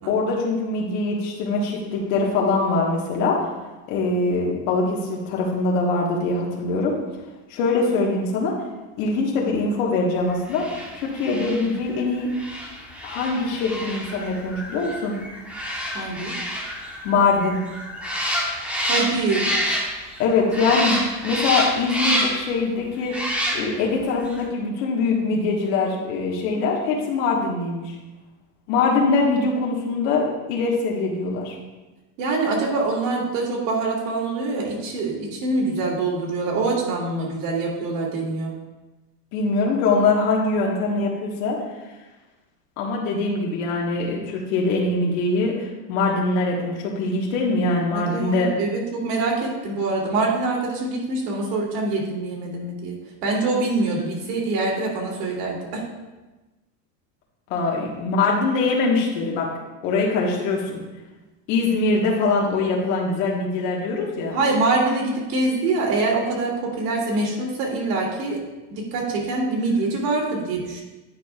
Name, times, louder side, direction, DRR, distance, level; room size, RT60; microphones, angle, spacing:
voice 1, 0.1-3.4 3.9-6.9 7.5-8.5 9.0-10.7 10.9-12.3 13.0-15.2 17.0-17.6 20.2-21.0 21.2-23.2 23.5-27.9 28.7-31.5 39.3-41.6 42.8-48.5 57.5-59.5 59.8-60.8 61.5-64.4, left 3 dB, 70° left, -2 dB, 1.5 m, -23 dB
sound 1, 10.5-20.2 20.5-22.5 23.1-23.9 24.3-24.4, equal, 5° right, 0.9 m, -28 dB
voice 2, 15.9-16.4 18.9-19.5 32.2-38.5 47.9-53.0 53.2-55.8 64.3-68.4 68.7-70.8, right 3 dB, 75° right, -2 dB, 2.4 m, -24 dB
9.4 x 6.1 x 2.3 m, 1.1 s
supercardioid pair, 135°, 48 cm